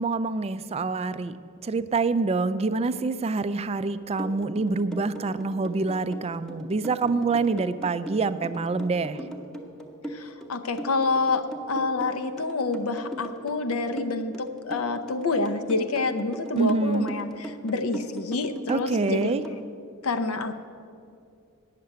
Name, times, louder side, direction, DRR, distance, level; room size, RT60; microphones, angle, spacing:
voice 1, 0.0-1.4 1.6-9.2 16.6-17.1 18.7-19.4, right 3 dB, 30° right, 13 dB, 0.3 m, -26 dB
sound 1, 4.2-19.6, right 1 dB, ahead, 0.8 m, -38 dB
voice 2, 10.1-19.3 20.0-20.6, left 3 dB, 75° left, 9 dB, 0.7 m, -28 dB
9.2 x 6.7 x 8.7 m, 2.4 s
head